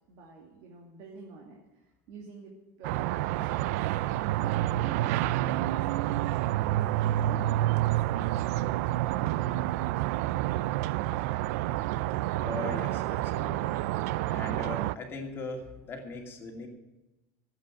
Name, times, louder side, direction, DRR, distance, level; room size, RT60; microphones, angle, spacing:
voice 1, 0.1-10.6, right 4 dB, 60° right, -1 dB, 2.5 m, -49 dB
Blue collar suburb with birds distant highway and trains, 2.8-15.0, right 15 dB, 90° right, 0.4 m, -28 dB
voice 2, 12.3-13.8 14.2-16.7, left 3 dB, 30° left, 2 dB, 2.5 m, -39 dB
13.0 x 8.4 x 8.9 m, 1.0 s
cardioid pair, 155°, 8 cm